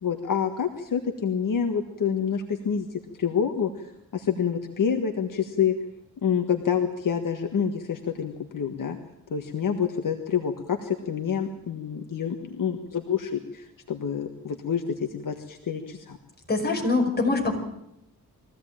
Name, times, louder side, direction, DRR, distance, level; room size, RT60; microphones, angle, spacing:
voice 1, 0.0-5.7 6.2-9.0 9.3-16.2, left 7 dB, 60° left, 5 dB, 1.7 m, -27 dB
voice 2, 16.5-17.6, left 3 dB, 25° left, 2 dB, 5.4 m, -23 dB
22.5 x 16.0 x 8.9 m, 0.82 s
wide cardioid pair, 110°, 36 cm